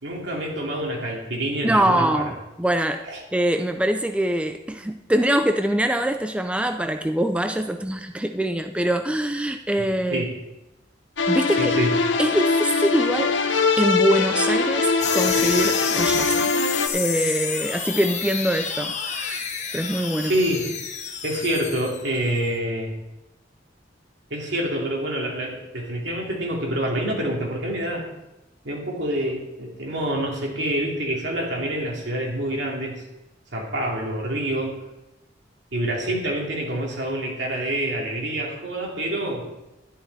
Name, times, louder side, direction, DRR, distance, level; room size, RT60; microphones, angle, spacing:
voice 1, 0.0-2.2 3.1-3.2 9.8-10.4 11.6-11.9 20.2-20.7 21.2-22.9 24.3-28.0 28.6-33.0 33.5-34.8 35.7-39.4, right 1 dB, 70° right, -1 dB, 2.7 m, -27 dB
voice 2, 1.6-3.0 3.3-10.2 11.3-11.7 12.2-13.3 13.8-16.5 16.9-19.4 19.7-20.3, right 1 dB, 5° right, 7 dB, 0.4 m, -23 dB
sound 1, 11.2-16.9, left 4 dB, 80° left, 0.9 m, -22 dB
sound 2, 15.0-22.5, left 6 dB, 40° left, 1.1 m, -29 dB
12.0 x 10.5 x 4.1 m, 0.97 s
head